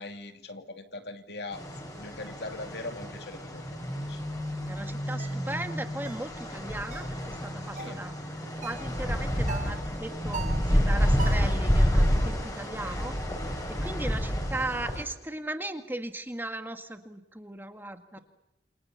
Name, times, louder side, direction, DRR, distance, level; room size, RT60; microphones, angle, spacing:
voice 1, 0.0-1.6 2.0-4.2 7.8-8.0 13.6-13.7, left 2 dB, 70° left, 7 dB, 2.6 m, -41 dB
sound 1, 1.5-15.0, equal, 20° left, 5.2 m, -29 dB
voice 2, 4.7-8.1 8.6-13.2 13.7-18.2, right 1 dB, 10° right, 7 dB, 1.9 m, -37 dB
sound 2, 5.2-5.4 6.0-6.3 6.9-7.2 7.8-8.0 8.6-8.9 9.5-9.8 10.3-10.7 11.2-11.5, right 4 dB, 45° right, 3.7 m, -39 dB
29.0 x 26.5 x 7.1 m, 0.88 s
head